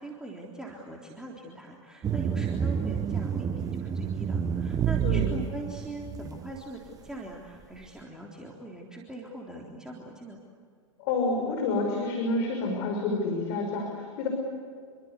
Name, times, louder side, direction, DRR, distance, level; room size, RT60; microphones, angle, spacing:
voice 1, 0.0-10.4, right 1 dB, 5° right, -2 dB, 3.7 m, -41 dB
sound 1, 2.0-6.6, right 8 dB, 20° right, 1.2 m, -29 dB
voice 2, 11.0-14.3, left 3 dB, 50° left, 2 dB, 5.9 m, -28 dB
28.0 x 25.0 x 8.3 m, 2.1 s
figure-of-eight pair, 100°, 16 cm